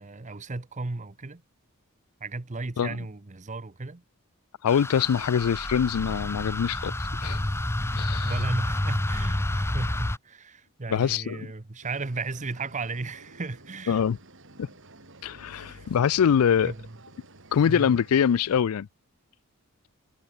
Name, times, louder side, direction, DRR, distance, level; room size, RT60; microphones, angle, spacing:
voice 1, 0.0-1.4 2.2-4.0 8.2-14.0 15.5-15.9 16.6-17.0 17.7-17.9, right 3 dB, 35° right, 0.9 m, -35 dB
voice 2, 4.6-6.9 7.2-7.4 7.9-8.4 10.9-11.5 13.9-14.2 14.6-14.7 15.2-16.7 17.5-18.9, left 7 dB, 80° left, 0.4 m, -24 dB
sound 1, 4.7-10.2, left 1 dB, 10° left, 0.6 m, -29 dB
sound 2, 11.8-18.6, right 2 dB, 60° right, 4.8 m, -52 dB
head